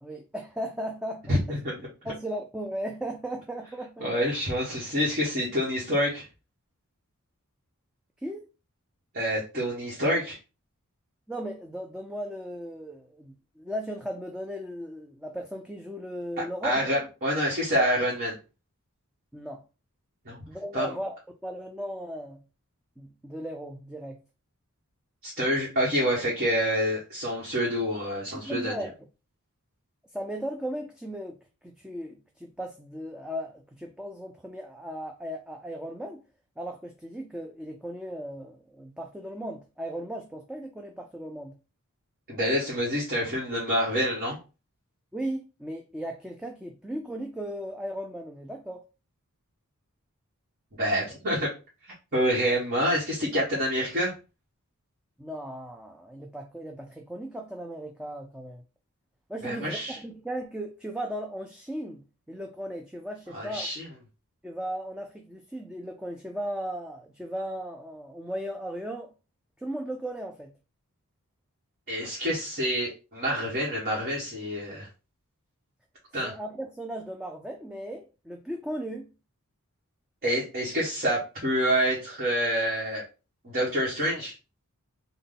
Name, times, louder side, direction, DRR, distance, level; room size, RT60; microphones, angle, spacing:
voice 1, 0.0-1.4 2.0-4.1 8.2-8.5 11.3-17.1 19.3-19.6 20.5-21.1 21.4-22.4 23.0-24.2 28.3-28.9 30.1-36.2 36.6-41.5 45.1-48.8 55.2-58.6 59.3-63.7 64.4-69.1 69.6-70.5 76.2-79.1, right 1 dB, 5° right, 0.3 m, -36 dB
voice 2, 1.3-1.8 4.0-6.2 9.1-10.4 16.6-18.3 20.2-20.4 20.7-20.9 25.2-28.7 42.3-44.4 50.7-51.5 52.1-54.1 59.4-60.0 63.3-63.9 71.9-74.9 76.1-76.3 80.2-83.0 83.4-84.3, equal, 45° right, 1.1 m, -27 dB
3.7 x 2.2 x 3.6 m
head